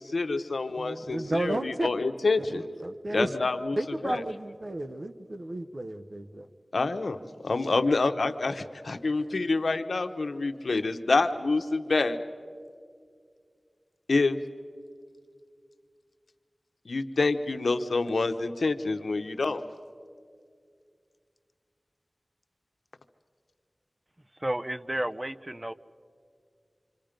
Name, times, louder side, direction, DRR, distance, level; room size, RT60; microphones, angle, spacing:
voice 1, 0.0-2.7 3.1-3.8 4.0-4.2 6.7-7.2 7.4-12.2 14.1-14.4 16.9-19.6, left 3 dB, 85° left, 8 dB, 0.9 m, -27 dB
voice 2, 0.8-1.9 2.4-3.3 3.8-6.5, right 1 dB, 55° right, 8 dB, 0.8 m, -32 dB
voice 3, 24.4-25.7, right 1 dB, 25° right, 13 dB, 0.7 m, -32 dB
27.0 x 25.5 x 5.1 m, 2.2 s
cardioid pair, 40°, 0 cm